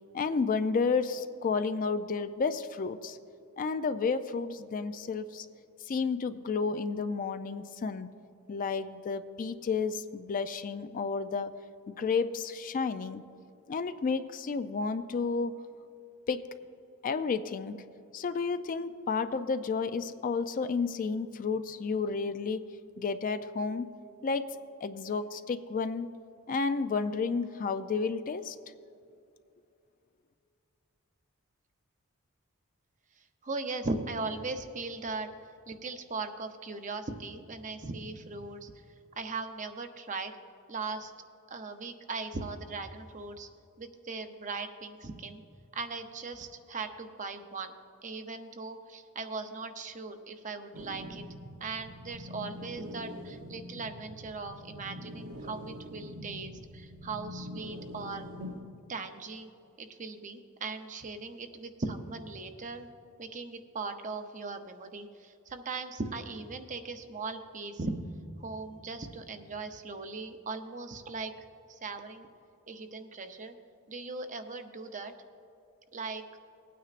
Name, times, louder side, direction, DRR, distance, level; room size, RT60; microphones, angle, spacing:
voice 1, 0.1-3.2 3.6-5.5 5.9-8.1 8.5-11.5 11.9-13.2 13.7-15.6 16.3-16.5 17.0-17.8 18.1-22.6 23.0-23.9 24.2-24.5 24.8-26.1 26.5-28.6, left 4 dB, 40° left, 11 dB, 0.3 m, -31 dB
voice 2, 33.4-35.3 35.7-38.7 39.2-40.3 40.7-41.1 41.5-43.5 43.8-45.4 45.7-47.7 48.0-51.2 51.6-58.3 58.9-59.5 59.8-62.9 63.2-67.9 68.4-71.3 71.7-72.3 72.7-73.5 73.9-75.1 75.9-76.2, right 3 dB, 35° right, 7 dB, 0.6 m, -39 dB
sound 1, 50.7-58.6, equal, 90° right, 0.8 m, -44 dB
19.5 x 9.3 x 2.5 m, 2.6 s
head